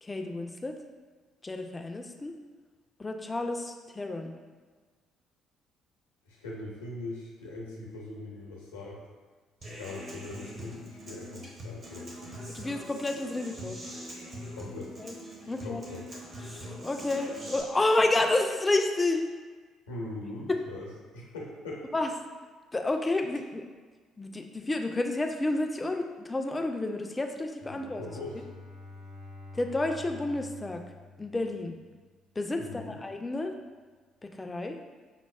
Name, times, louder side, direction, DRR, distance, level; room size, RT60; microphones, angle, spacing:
voice 1, 0.0-0.8 1.4-2.3 3.0-4.3 12.5-13.8 15.0-15.1 15.5-15.8 16.4-19.3 20.5-20.6 21.9-22.1 22.7-23.6 24.2-28.1 29.5-30.8 31.2-31.8 32.4-33.5 34.2-34.8, left 2 dB, 20° left, 4 dB, 0.4 m, -30 dB
voice 2, 6.3-9.0 9.6-12.3 14.5-15.0 15.6-16.1 19.9-20.9 21.1-21.8 27.6-28.4 32.6-33.0, left 2 dB, 80° left, -4 dB, 0.7 m, -41 dB
Human voice / Acoustic guitar, 9.6-17.6, equal, 45° right, 0.9 m, -43 dB
Bowed string instrument, 27.7-32.1, left 3 dB, 60° right, 0.5 m, -48 dB
5.6 x 2.0 x 2.3 m, 1.4 s
figure-of-eight pair, 50°, 0 cm